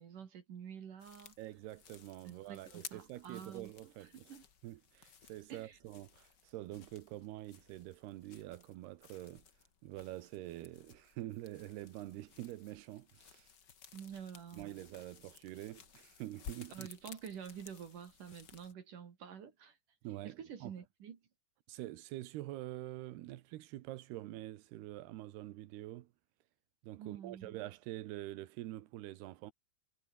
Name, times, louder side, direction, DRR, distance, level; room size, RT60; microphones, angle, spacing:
voice 1, 0.0-1.4 2.3-3.7 4.0-4.4 5.5-5.8 13.9-14.8 16.7-19.8 20.2-21.2 27.0-27.6, right 8 dB, 55° right, 3.8 m, -49 dB
sound 1, 1.0-18.7, left 7 dB, 50° left, 1.3 m, -57 dB
voice 2, 1.4-4.3 4.6-9.4 9.8-13.5 14.5-16.9 20.0-20.7 21.7-26.1 26.8-29.5, right 15 dB, 80° right, 3.1 m, -46 dB
omnidirectional pair, 4.6 m